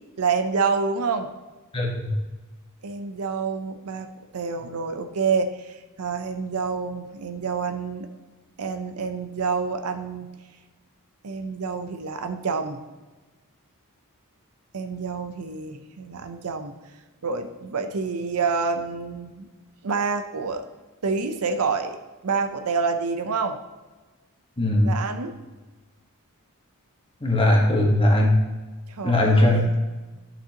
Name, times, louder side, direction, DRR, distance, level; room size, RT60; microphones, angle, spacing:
voice 1, 0.2-1.3 2.8-4.1 4.3-8.1 8.6-10.3 11.2-12.8 14.7-16.7 17.2-19.5 19.8-20.7 21.0-22.0 22.2-23.6 24.8-25.3 28.9-29.9, right 5 dB, 75° right, 7 dB, 0.6 m, -27 dB
voice 2, 1.7-2.1 24.6-24.9 27.2-28.4 29.0-29.6, left 1 dB, 25° left, 0 dB, 1.3 m, -19 dB
11.5 x 6.0 x 2.9 m, 1.2 s
head